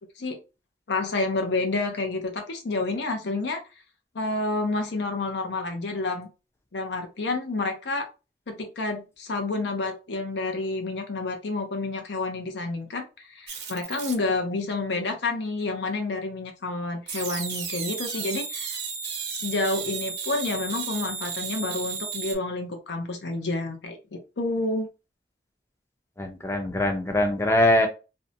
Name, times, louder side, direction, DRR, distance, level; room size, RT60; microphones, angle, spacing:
voice 1, 0.9-3.6 4.1-6.3 6.7-8.1 8.5-18.7 19.3-24.9, left 3 dB, 75° left, 0.6 m, -29 dB
sound 1, 13.5-14.1 17.1-22.3, right 6 dB, 70° right, 0.7 m, -33 dB
voice 2, 26.2-27.9, left 1 dB, 15° left, 0.4 m, -22 dB
2.6 x 2.1 x 2.6 m
head